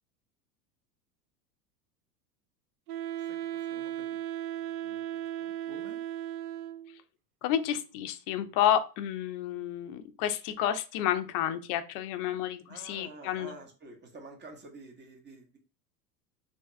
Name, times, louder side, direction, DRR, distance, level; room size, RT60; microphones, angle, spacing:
Wind instrument woodwind instrument, 2.9-7.0, right 11 dB, 70° right, 0.6 m, -36 dB
voice 1, 3.2-4.2 4.8-6.0 12.7-15.6, right 3 dB, 20° right, 2 dB, 1.0 m, -50 dB
voice 2, 7.4-13.5, left 10 dB, 40° left, 10 dB, 0.5 m, -30 dB
3.3 x 2.8 x 3.1 m, 0.34 s
hypercardioid pair, 90°, 48 cm